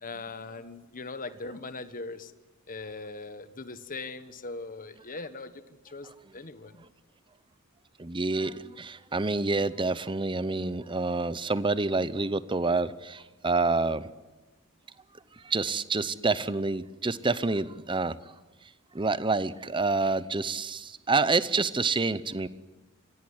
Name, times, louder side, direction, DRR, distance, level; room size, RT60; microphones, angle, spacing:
voice 1, 0.0-2.3 2.7-6.8, left 3 dB, 40° left, 11 dB, 1.4 m, -40 dB
voice 2, 8.0-14.1 15.4-18.3 18.9-22.5, right 3 dB, 25° right, 16 dB, 0.7 m, -28 dB
26.0 x 17.0 x 9.7 m, 1.2 s
head